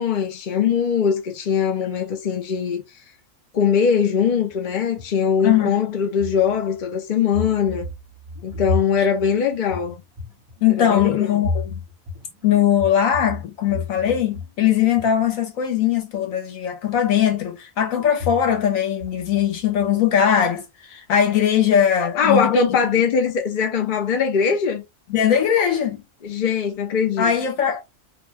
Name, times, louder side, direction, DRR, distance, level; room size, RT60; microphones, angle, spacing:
voice 1, 0.0-2.8 3.5-7.9 8.4-10.0 10.8-11.4 22.0-24.8 26.2-27.3, left 6 dB, 45° left, 0.7 m, -21 dB
sound 1, 4.5-5.7 6.1-6.9 7.3-14.5 14.8-15.3 18.0-18.7 19.0-20.0 23.0-23.3 23.6-23.7, left 3 dB, 25° right, 1.1 m, -32 dB
voice 2, 5.4-5.8 9.0-9.1 10.6-11.8 12.4-22.7 25.1-26.0 27.2-27.8, left 9 dB, 75° left, 1.2 m, -20 dB
2.6 x 2.2 x 3.2 m
omnidirectional pair, 1.4 m